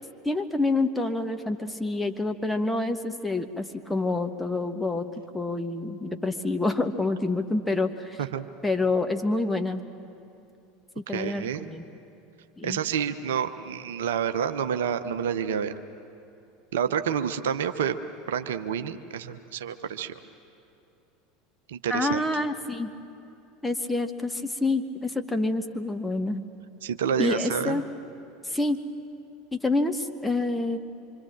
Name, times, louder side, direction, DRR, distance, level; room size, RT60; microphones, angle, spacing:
voice 1, 0.2-5.1 5.3-8.2 8.6-9.8 11.0-11.8 12.6-12.8 21.9-22.9 23.6-26.4 27.2-27.8 28.4-28.8 29.5-30.8, left 2 dB, 5° left, 6 dB, 1.3 m, -27 dB
voice 2, 11.1-11.7 12.6-15.7 16.7-18.0 18.3-20.1 21.7-22.2 26.8-27.8, right 8 dB, 65° right, 9 dB, 0.9 m, -28 dB
26.0 x 25.0 x 7.5 m, 2.8 s
figure-of-eight pair, 75°, 0 cm